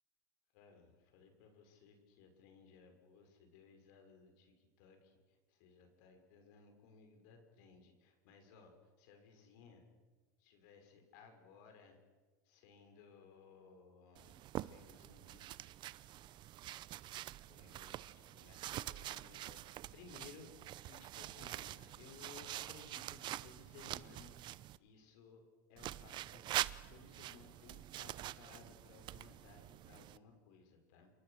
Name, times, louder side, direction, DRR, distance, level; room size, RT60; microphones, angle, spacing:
voice 1, 0.5-5.2 5.5-9.8 10.4-12.0 12.5-15.5 17.5-20.5 20.8-24.3 24.8-31.1, left 5 dB, 70° left, 5 dB, 6.1 m, -60 dB
sound 1, 14.2-24.8 25.8-30.2, right 14 dB, 50° right, 0.8 m, -45 dB
27.5 x 22.5 x 6.7 m, 1.3 s
supercardioid pair, 105°, 10 cm